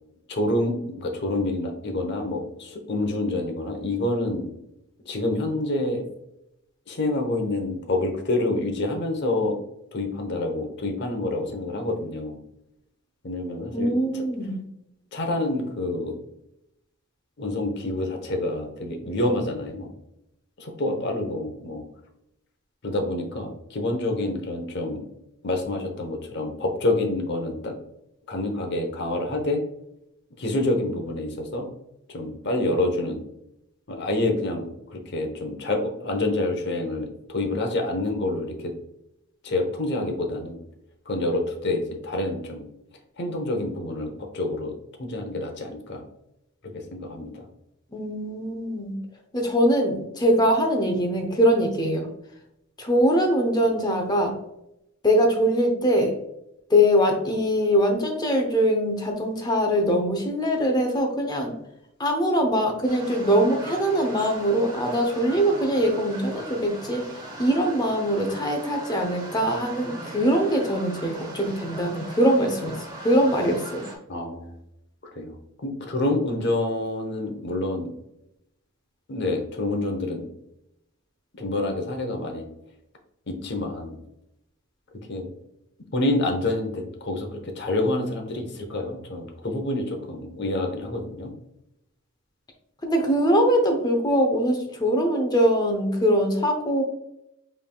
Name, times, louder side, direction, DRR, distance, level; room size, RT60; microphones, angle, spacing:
voice 1, 0.3-4.5 5.1-6.0 6.9-9.6 9.9-12.4 13.2-14.2 15.1-16.1 17.4-19.9 20.6-21.9 22.8-25.0 25.4-27.8 28.3-29.6 30.4-31.7 32.1-33.2 33.9-38.7 39.4-40.6 41.1-42.6 43.2-46.0 46.7-47.5 74.1-74.5 75.1-77.9 79.1-80.3 81.4-82.4 83.3-84.0 85.1-85.3 85.9-91.3, left 2 dB, 50° left, 3 dB, 0.8 m, -27 dB
voice 2, 13.7-14.6 47.9-49.0 49.3-52.1 52.8-54.3 55.0-56.2 56.7-61.5 62.0-67.0 67.4-72.8 73.0-73.9 92.8-96.8, equal, 20° left, 3 dB, 0.7 m, -22 dB
sound 1, 62.9-74.0, right 1 dB, 20° right, 0.9 m, -39 dB
5.5 x 3.4 x 2.3 m, 0.83 s
head